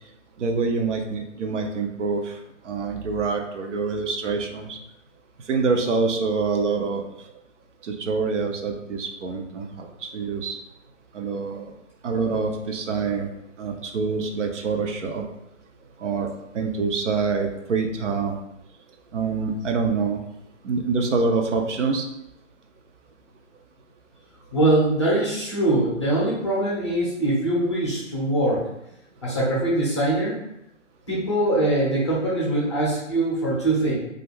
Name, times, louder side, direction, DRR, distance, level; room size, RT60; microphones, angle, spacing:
voice 1, 0.4-2.4 2.6-4.8 5.4-7.1 7.8-10.6 11.1-11.7 12.0-13.3 13.6-15.3 16.0-18.4 19.1-20.2 20.6-22.1, right 4 dB, 70° right, 3 dB, 0.5 m, -26 dB
voice 2, 24.5-28.6 29.2-30.4 31.1-34.0, right 1 dB, 25° left, -6 dB, 0.5 m, -22 dB
2.3 x 2.0 x 3.2 m, 0.83 s
hypercardioid pair, 155°, 38 cm